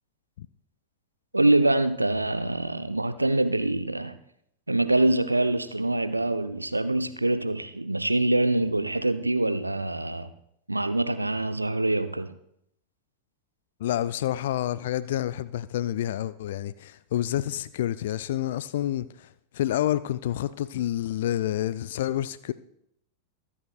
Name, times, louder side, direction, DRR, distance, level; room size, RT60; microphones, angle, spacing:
voice 1, 1.3-4.2 4.7-10.3 10.7-12.3, right 2 dB, 85° right, 0.7 m, -25 dB
voice 2, 13.8-22.5, left 12 dB, 55° left, 0.3 m, -28 dB
23.5 x 8.5 x 2.3 m
figure-of-eight pair, 90°, 0 cm